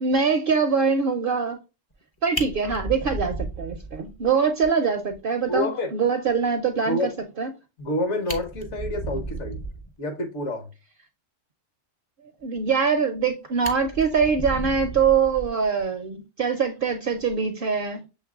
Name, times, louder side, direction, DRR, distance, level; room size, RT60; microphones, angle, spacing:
voice 1, 0.0-1.6 2.2-7.1 7.4-7.5 12.4-18.0, right 5 dB, 60° right, 0.6 m, -23 dB
Fire, 1.9-2.0 2.3-4.3 4.6-4.7 5.1-5.2 5.5-5.6 7.8-7.9 8.2-9.9 12.7-13.3 13.6-15.8 17.1-17.3, right 2 dB, 35° left, 0.4 m, -34 dB
voice 2, 5.5-5.9 6.8-7.1 7.8-9.6 10.0-10.7, left 1 dB, 65° left, 1.3 m, -28 dB
6.4 x 3.3 x 2.3 m
omnidirectional pair, 1.4 m